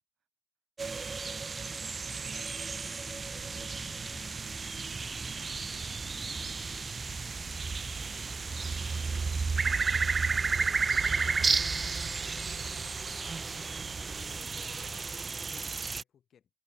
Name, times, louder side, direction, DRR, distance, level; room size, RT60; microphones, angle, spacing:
sound 1, 0.8-16.0, right 4 dB, 35° right, 0.7 m, -32 dB
voice 1, 1.6-3.0 3.3-5.0 14.0-16.5, left 8 dB, 60° left, 6.6 m, -62 dB
sound 2, 3.0-14.9, left 5 dB, 35° left, 1.0 m, -54 dB
voice 2, 3.6-4.1 5.1-8.9 9.4-11.0, right 10 dB, 65° right, 8.0 m, -66 dB
cardioid pair, 90°, 0 cm